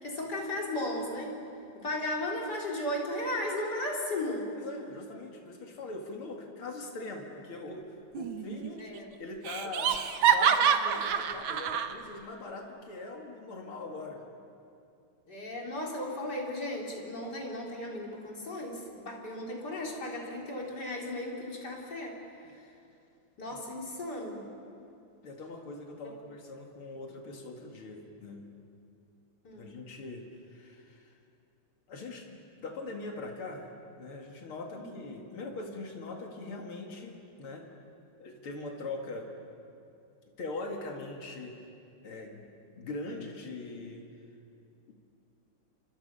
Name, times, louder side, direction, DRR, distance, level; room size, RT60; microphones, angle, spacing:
voice 1, 0.0-1.4 1.8-4.5 8.8-9.1 15.3-22.2 23.4-24.4 29.4-29.7 34.8-34.9, left 1 dB, 50° left, -2 dB, 4.3 m, -35 dB
voice 2, 4.5-8.8 9.2-10.0 10.3-14.2 23.5-23.6 25.2-28.4 29.5-31.1 31.9-33.7 34.0-37.7 38.2-39.3 40.4-41.6 42.0-42.5 42.8-44.0, left 3 dB, 90° left, 1 dB, 3.0 m, -41 dB
Laughter, 8.1-8.7 9.0-9.1 9.5-11.9, right 7 dB, 75° right, 1.8 m, -26 dB
29.5 x 24.5 x 5.6 m, 2.6 s
omnidirectional pair, 2.3 m